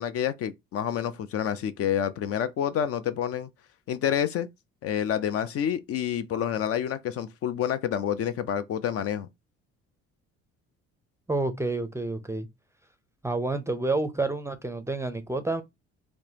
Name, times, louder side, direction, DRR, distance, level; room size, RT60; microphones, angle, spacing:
voice 1, 0.0-3.5 3.9-4.5 4.8-9.3, left 9 dB, 50° left, 0.4 m, -28 dB
voice 2, 11.3-12.5 13.2-15.6, right 2 dB, 10° right, 0.5 m, -29 dB
3.2 x 2.0 x 2.8 m
supercardioid pair, 70°, 31 cm